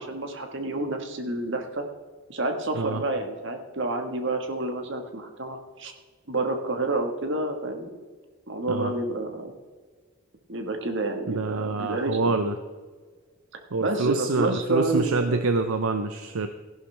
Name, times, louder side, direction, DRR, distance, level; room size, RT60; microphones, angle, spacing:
voice 1, 0.0-1.8 2.3-5.9 6.3-7.9 8.5-9.5 10.5-12.4 13.5-15.4, right 2 dB, 55° right, 5 dB, 1.5 m, -29 dB
voice 2, 11.3-12.5 13.7-16.5, right 3 dB, 80° right, 8 dB, 0.7 m, -26 dB
14.5 x 11.5 x 3.4 m, 1.4 s
head